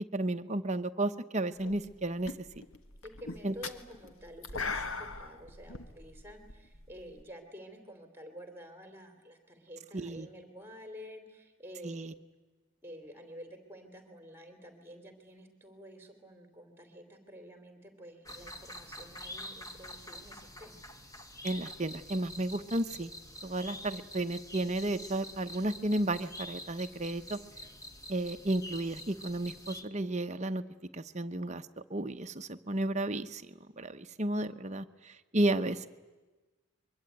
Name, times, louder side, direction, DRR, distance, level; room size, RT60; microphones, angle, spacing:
voice 1, 0.0-2.3 3.4-3.5 9.9-10.3 11.8-12.1 21.4-23.1 23.4-27.4 28.1-30.6 30.9-31.6 31.9-33.4 33.8-35.9, right 1 dB, 30° right, 8 dB, 0.9 m, -33 dB
sound 1, 1.6-2.0 2.2-7.2, left 4 dB, 65° left, 1.4 m, -40 dB
voice 2, 3.0-12.2 12.8-20.8, equal, 10° right, 6 dB, 3.0 m, -50 dB
sound 2, 18.3-29.8, left 1 dB, 15° left, 1.4 m, -47 dB
24.0 x 23.0 x 9.3 m, 1.2 s
head